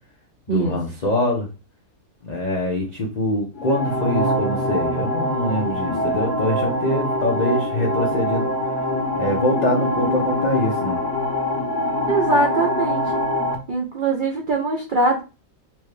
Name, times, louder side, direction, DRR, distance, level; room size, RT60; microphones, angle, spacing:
voice 1, 0.5-1.5 2.2-8.5 9.2-11.0, left 1 dB, 60° left, -3 dB, 0.4 m, -24 dB
sound 1, 3.5-13.5, left 1 dB, 90° left, 1.4 m, -24 dB
voice 2, 12.1-13.1 13.7-15.2, right 3 dB, 70° right, 1 dB, 0.4 m, -21 dB
4.3 x 2.2 x 3.1 m, 0.31 s
omnidirectional pair, 1.6 m